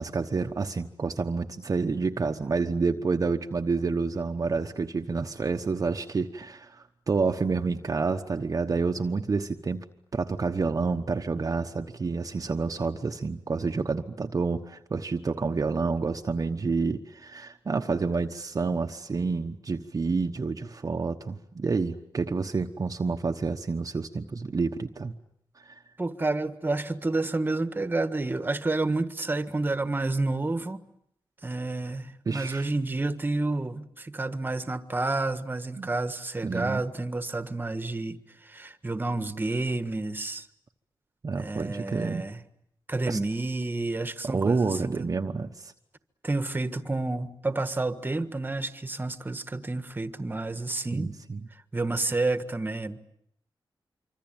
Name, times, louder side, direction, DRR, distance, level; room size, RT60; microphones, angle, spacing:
voice 1, 0.0-9.8 10.1-25.1 25.6-25.7 32.3-32.7 35.8-35.9 36.4-36.8 41.2-42.2 43.1-43.2 44.2-45.7 50.9-51.4, right 4 dB, 40° right, 4 dB, 1.1 m, -29 dB
voice 2, 26.0-30.8 31.4-38.2 38.4-40.5 41.3-42.4 42.9-45.1 46.2-51.1 51.7-53.0, right 2 dB, 20° right, 11 dB, 1.6 m, -30 dB
25.5 x 25.5 x 9.0 m, 0.72 s
wide cardioid pair, 125°, 9 cm